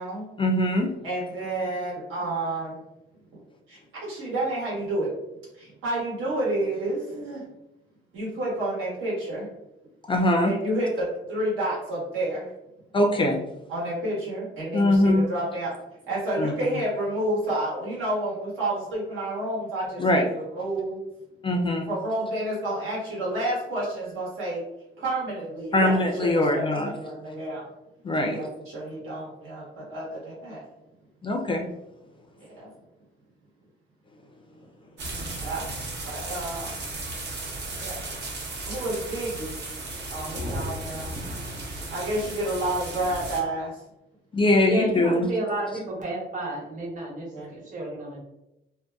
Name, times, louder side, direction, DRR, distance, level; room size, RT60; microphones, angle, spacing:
voice 1, 0.4-0.9 10.1-10.5 12.9-13.4 14.7-15.3 16.4-16.5 20.0-20.3 21.4-21.9 25.7-26.9 28.0-28.4 31.2-31.7 44.3-45.3, left 1 dB, 25° left, 2 dB, 0.3 m, -22 dB
voice 2, 1.0-2.8 3.7-5.1 5.6-7.4 8.1-9.5 10.4-12.5 13.7-15.7 16.1-21.0 21.9-24.6 25.0-27.6 28.2-30.6 32.4-32.7 35.4-35.6 36.0-36.7 37.8-38.0 38.7-39.5 40.1-41.1 41.9-43.7 47.3-47.5, right 1 dB, 85° right, -6 dB, 1.2 m, -30 dB
sound 1, 35.0-43.4, right 2 dB, 60° right, 0.7 m, -35 dB
voice 3, 44.7-48.2, right 2 dB, 40° right, -4 dB, 1.0 m, -31 dB
2.6 x 2.2 x 2.2 m, 0.90 s
cardioid pair, 90°, 20 cm